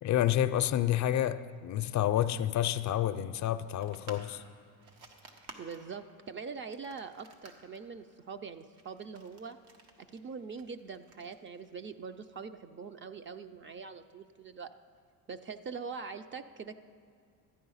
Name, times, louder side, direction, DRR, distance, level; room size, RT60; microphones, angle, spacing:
voice 1, 0.0-4.4, left 11 dB, 50° left, 0.4 m, -29 dB
sound 1, 3.8-12.1, right 3 dB, 85° right, 1.4 m, -55 dB
voice 2, 5.6-9.6 10.1-14.7 15.3-16.8, right 5 dB, 30° right, 0.4 m, -43 dB
13.0 x 9.5 x 5.5 m
cardioid pair, 115°, 39 cm